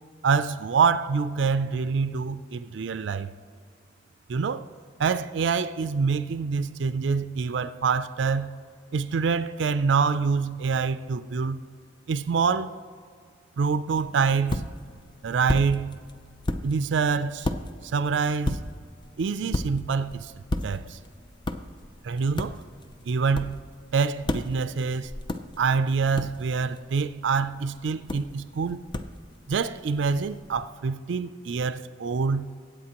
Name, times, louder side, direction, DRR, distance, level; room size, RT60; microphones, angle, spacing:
voice 1, 0.2-3.3 4.3-4.6 5.0-8.5 8.9-11.6 12.1-12.8 13.6-14.6 15.2-16.0 16.6-17.5 17.8-18.6 19.2-20.3 20.6-21.0 22.0-22.6 23.1-23.6 23.9-25.1 25.6-28.9 29.5-32.5, right 5 dB, 70° right, 0.4 m, -26 dB
weak footstep, 13.9-30.6, left 1 dB, 25° left, 0.5 m, -36 dB
21.0 x 8.9 x 2.9 m
head